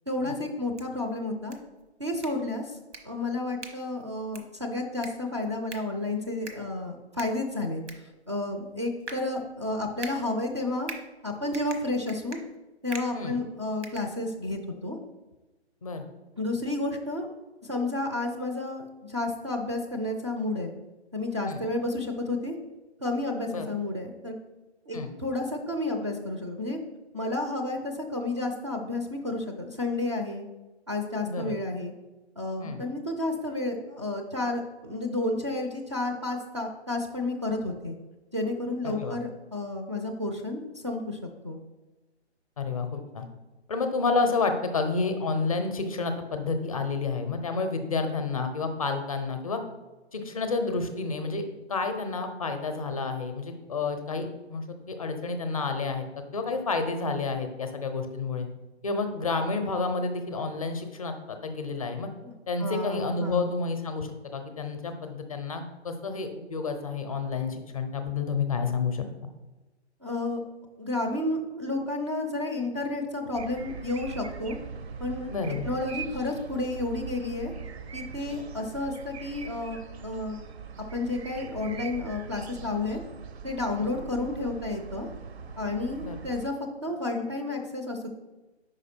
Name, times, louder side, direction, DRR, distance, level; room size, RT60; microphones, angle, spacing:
voice 1, 0.1-1.6 2.0-2.8 3.0-10.9 11.2-12.4 12.8-15.0 16.4-17.3 17.6-20.7 21.1-22.6 23.0-24.3 24.9-26.8 27.1-30.4 30.9-31.9 32.4-38.0 38.3-41.6 62.2-62.3 62.6-63.5 70.0-70.4 70.8-74.6 75.0-75.3 75.6-77.5 77.9-79.8 80.0-80.4 80.9-83.0 83.4-85.1 85.6-86.5 86.8-88.1, left 2 dB, 25° right, 2 dB, 0.4 m, -31 dB
sound 1, 0.5-14.7, right 3 dB, 90° right, 1.1 m, -46 dB
voice 2, 31.2-31.6 32.6-32.8 38.8-39.2 42.6-43.3 43.7-49.6 50.1-51.4 51.7-58.5 58.8-62.1 62.5-69.0 75.3-75.7 83.7-83.9 86.0-86.2, left 4 dB, 30° left, 7 dB, 0.5 m, -30 dB
sound 2, 73.3-86.5, right 6 dB, 65° right, 0.6 m, -41 dB
4.9 x 4.6 x 4.2 m, 1.1 s
hypercardioid pair, 145°, 34 cm